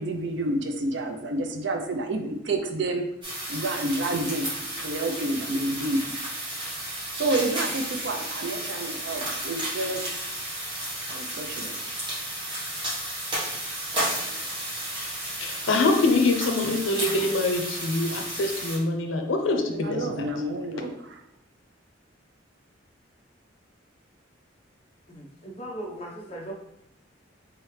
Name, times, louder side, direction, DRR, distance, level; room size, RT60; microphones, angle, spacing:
voice 1, 0.0-3.1 3.5-6.2 7.1-10.2 11.1-11.8 14.2-14.3 19.7-21.2, right 2 dB, 60° right, 5 dB, 0.5 m, -29 dB
sound 1, 3.2-18.8, right 1 dB, 25° right, 1.2 m, -33 dB
voice 2, 15.4-20.3, left 2 dB, 80° left, 4 dB, 0.6 m, -25 dB
voice 3, 25.1-26.5, right 1 dB, 30° left, -1 dB, 0.8 m, -38 dB
3.7 x 3.2 x 3.2 m, 0.81 s
head